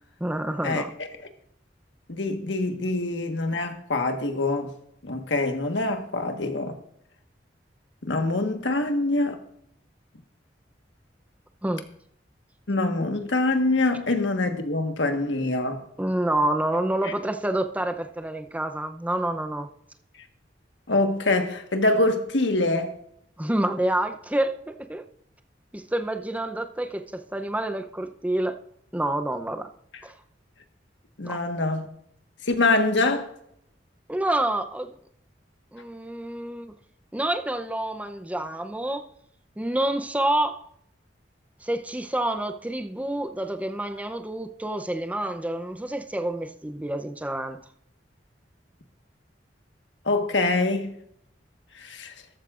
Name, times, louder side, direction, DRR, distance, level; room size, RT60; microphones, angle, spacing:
voice 1, 0.2-0.9 11.6-11.9 16.0-19.7 23.4-25.1 25.7-28.6 28.9-29.7 30.0-30.1 31.2-31.4 34.1-34.9 35.7-36.7 37.1-39.1 39.6-40.6 41.6-47.6, right 1 dB, 10° right, 0.6 m, -28 dB
voice 2, 2.1-4.7 5.0-6.8 8.0-9.4 12.7-15.8 17.0-17.1 20.9-22.9 31.2-31.9 32.4-33.3 50.0-51.0 51.8-52.1, left 2 dB, 85° left, 1.4 m, -24 dB
13.5 x 13.0 x 2.5 m
head